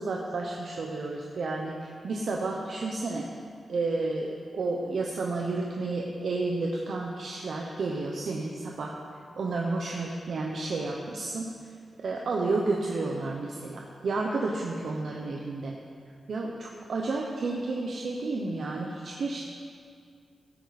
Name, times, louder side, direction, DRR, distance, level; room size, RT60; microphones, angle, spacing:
voice 1, 0.0-3.3 3.7-4.3 4.5-9.0 9.4-11.5 12.0-15.8 16.3-19.4, right 3 dB, 60° right, -1 dB, 0.9 m, -31 dB
15.5 x 8.4 x 4.1 m, 2.3 s
wide cardioid pair, 175°, 0 cm